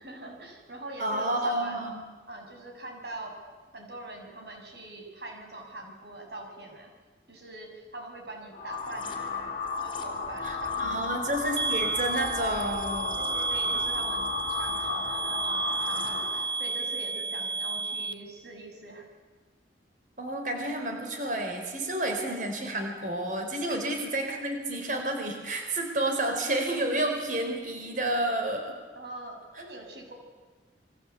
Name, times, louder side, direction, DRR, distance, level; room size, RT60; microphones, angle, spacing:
voice 1, 0.0-1.8 2.3-3.4 3.7-6.9 7.3-11.1 13.2-19.1 27.8-28.0 29.0-30.1, right 1 dB, 70° right, 2 dB, 7.1 m, -43 dB
voice 2, 1.0-2.0 10.4-13.2 20.2-28.8, right 1 dB, 45° right, 4 dB, 4.3 m, -30 dB
sound 1, 8.5-16.6, left 4 dB, 30° left, 3.7 m, -34 dB
sound 2, 11.6-18.1, right 4 dB, 25° right, 1.2 m, -32 dB
29.0 x 24.0 x 8.4 m, 1.3 s
head